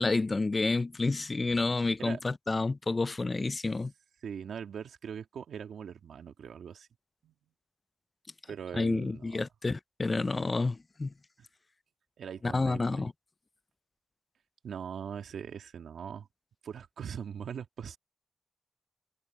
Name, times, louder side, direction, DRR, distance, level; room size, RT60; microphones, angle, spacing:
voice 1, 0.0-3.9 8.7-11.1 12.4-13.1, left 3 dB, 35° left, 0.5 m, -29 dB
voice 2, 4.2-6.9 7.2-7.3 8.5-9.4 12.2-13.1 14.6-16.3 16.6-18.0, right 7 dB, 85° right, 2.2 m, -41 dB
cardioid pair, 70°, 0 cm